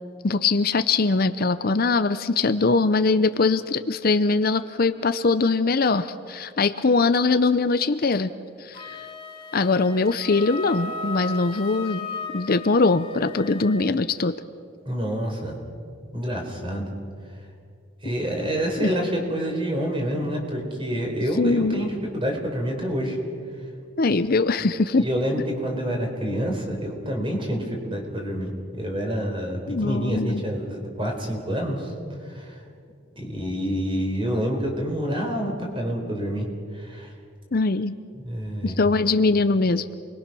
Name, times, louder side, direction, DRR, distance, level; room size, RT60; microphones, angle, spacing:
voice 1, 0.2-8.3 8.6-9.0 9.5-12.1 12.3-14.3 18.8-18.9 21.4-21.9 24.0-25.0 29.7-30.4 37.5-38.0 38.6-39.9, left 3 dB, 45° left, 11 dB, 0.6 m, -22 dB
Wind instrument woodwind instrument, 8.7-13.9, left 3 dB, 25° left, 1.8 m, -36 dB
voice 2, 14.9-15.5 16.1-16.9 18.0-23.2 25.0-31.9 32.2-32.6 33.2-36.5 36.7-37.1 38.2-38.7, equal, 25° right, 1 dB, 4.4 m, -27 dB
28.5 x 22.0 x 6.2 m, 2.3 s
head